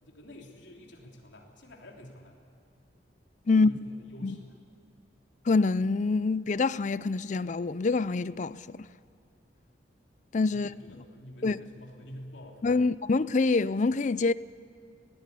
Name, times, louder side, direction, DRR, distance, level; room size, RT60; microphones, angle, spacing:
voice 1, 0.0-2.3 3.5-4.6 10.5-12.7, equal, 80° left, 3.3 m, -48 dB
voice 2, 5.5-8.9 10.3-10.7 11.4-11.6 12.6-14.3, left 3 dB, 40° left, 0.4 m, -26 dB
20.5 x 18.0 x 8.4 m
head